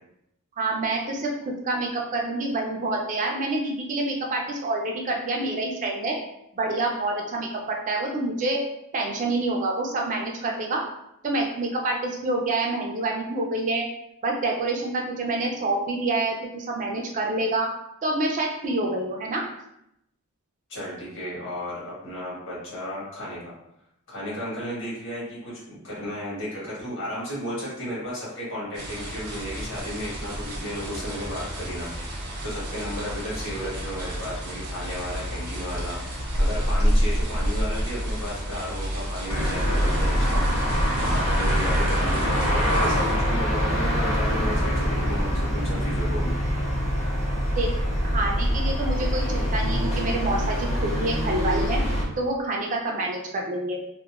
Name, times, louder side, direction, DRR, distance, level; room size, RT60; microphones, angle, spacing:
voice 1, 0.6-1.3 1.6-6.2 6.6-8.6 8.9-10.8 11.2-13.8 14.2-17.7 18.0-19.4 47.6-47.7 48.0-51.8 52.2-53.8, right 2 dB, 35° right, 0 dB, 0.3 m, -27 dB
voice 2, 20.7-23.5 24.1-40.4 41.0-46.3, equal, 60° left, -8 dB, 1.4 m, -34 dB
sound 1, 28.7-43.1, equal, 70° right, 0.7 m, -30 dB
sound 2, 39.3-52.0, equal, 30° left, 0.6 m, -24 dB
2.8 x 2.0 x 2.3 m, 0.79 s
head